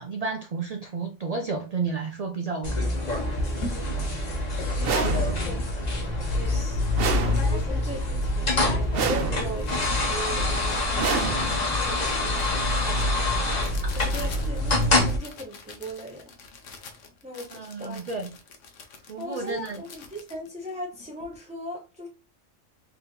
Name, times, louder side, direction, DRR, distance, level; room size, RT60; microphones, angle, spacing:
voice 1, 0.0-3.0 13.8-14.2 17.5-18.3 19.1-19.8, right 4 dB, 80° right, 0.3 m, -32 dB
sound 1, 2.6-15.2, left 2 dB, 40° left, 1.0 m, -26 dB
sound 2, 2.9-3.0 3.4-5.7 6.2-6.3 6.4-6.9 7.2-8.0 8.3-21.4, left 3 dB, 80° left, 1.2 m, -41 dB
voice 2, 4.8-5.6 6.3-13.3 14.0-16.3 17.2-18.0 19.2-22.1, equal, 10° right, 0.4 m, -39 dB
sound 3, 4.8-5.7 7.0-7.9 8.9-9.7 11.0-11.9, right 5 dB, 55° right, 0.8 m, -29 dB
3.6 x 3.4 x 2.8 m
omnidirectional pair, 1.3 m